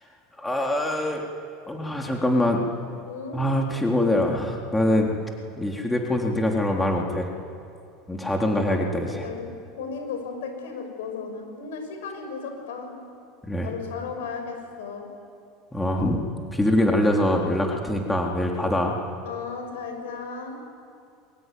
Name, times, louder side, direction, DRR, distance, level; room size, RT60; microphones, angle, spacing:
voice 1, 0.4-1.2 1.7-2.6 3.3-5.1 5.6-7.3 8.1-9.3 13.4-13.7 15.7-16.2 16.5-19.0, left 1 dB, 10° left, 0 dB, 3.9 m, -24 dB
voice 2, 3.1-3.4 9.2-13.0 13.6-15.1 19.2-20.6, left 5 dB, 80° left, 4 dB, 6.7 m, -35 dB
24.0 x 21.5 x 9.5 m, 2.5 s
hypercardioid pair, 85°, 0 cm